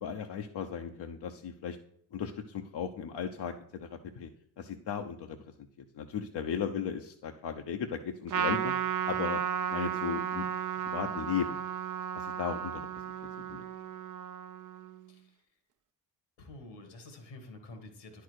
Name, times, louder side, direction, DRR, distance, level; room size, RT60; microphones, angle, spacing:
voice 1, 0.0-1.8 2.1-4.3 4.6-5.4 5.9-9.4 9.7-10.5 10.8-11.6 12.1-12.9 13.5-13.6, left 7 dB, 60° left, 4 dB, 0.9 m, -36 dB
Trumpet, 8.3-15.0, right 9 dB, 45° right, 0.7 m, -34 dB
voice 2, 16.4-18.2, left 2 dB, 80° left, 6 dB, 2.2 m, -49 dB
10.0 x 4.8 x 6.4 m, 0.69 s
hypercardioid pair, 45°, 45 cm